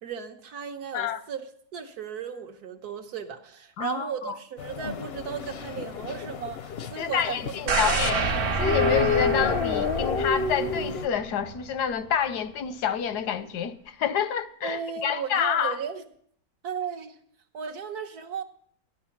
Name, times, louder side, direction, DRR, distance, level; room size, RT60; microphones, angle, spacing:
voice 1, 0.0-1.5 1.7-8.2 14.6-16.0 16.6-17.2 17.5-18.4, right 7 dB, 75° right, 1.7 m, -35 dB
voice 2, 3.8-4.4 7.0-8.2 8.6-15.8, left 8 dB, 90° left, 1.4 m, -28 dB
sound 1, 4.6-11.1, left 6 dB, 60° left, 0.7 m, -30 dB
sound 2, 7.7-11.7 12.0-12.1, right 4 dB, 55° right, 1.3 m, -28 dB
14.0 x 11.0 x 5.9 m
omnidirectional pair, 1.7 m